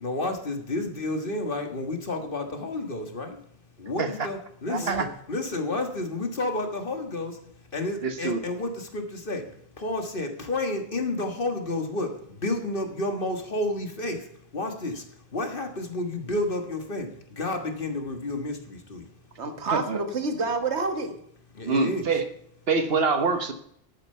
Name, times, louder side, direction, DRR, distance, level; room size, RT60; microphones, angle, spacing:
voice 1, 0.0-3.4 3.8-7.4 7.7-19.1 21.6-22.1, left 2 dB, 55° left, 5 dB, 1.8 m, -31 dB
voice 2, 4.7-5.1 8.0-8.4 19.7-20.0 21.6-22.2 22.7-23.5, right 4 dB, 65° right, 9 dB, 1.4 m, -25 dB
voice 3, 19.4-21.2, right 3 dB, 90° right, 7 dB, 1.7 m, -28 dB
11.5 x 8.9 x 5.5 m, 0.70 s
omnidirectional pair, 1.1 m